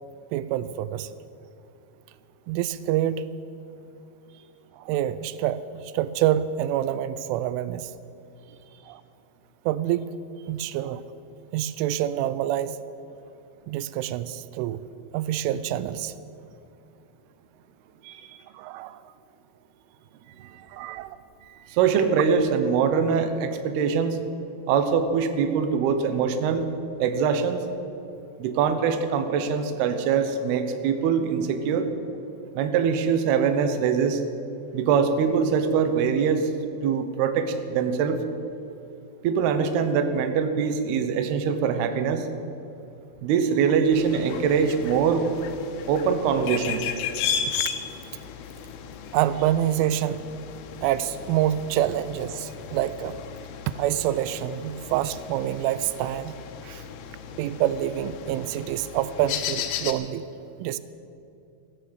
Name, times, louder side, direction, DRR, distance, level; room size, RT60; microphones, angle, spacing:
voice 1, 0.3-1.2 2.5-3.3 4.8-7.9 8.9-9.0 9.7-10.1 10.5-11.0 11.5-12.8 13.7-14.8 15.1-16.1 18.5-19.1 20.7-21.2 47.5-47.6 49.1-50.2 50.8-53.2 53.7-56.3 56.6-56.8 57.4-60.3 60.6-60.8, right 12 dB, 90° right, 15 dB, 3.0 m, -27 dB
voice 2, 18.0-18.4 20.4-20.7 21.7-24.2 24.7-26.6 27.0-27.6 28.4-31.9 32.6-34.2 34.7-36.5 36.8-38.2 39.2-42.3 43.2-45.3 45.9-46.9, right 6 dB, 70° right, 8 dB, 2.6 m, -23 dB
sound 1, 43.9-59.9, left 8 dB, 85° left, 3.4 m, -35 dB
15.5 x 10.0 x 8.0 m, 2.8 s
omnidirectional pair, 5.5 m